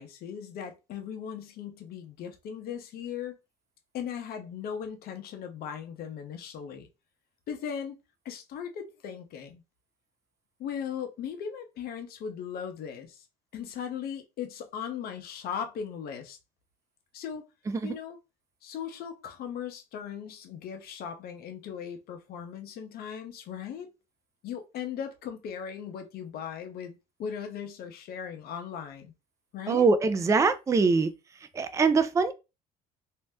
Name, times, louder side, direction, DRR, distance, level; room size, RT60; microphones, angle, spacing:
voice 1, 0.0-3.4 3.9-6.9 7.5-7.9 8.2-9.6 10.6-13.2 13.5-16.4 17.1-17.5 17.8-18.2 18.6-23.9 24.4-29.1 29.5-29.9, left 8 dB, 65° left, 0.8 m, -38 dB
voice 2, 29.7-31.1 31.5-32.3, right 4 dB, 20° right, 0.4 m, -23 dB
2.7 x 2.0 x 3.4 m
supercardioid pair, 85°, 17 cm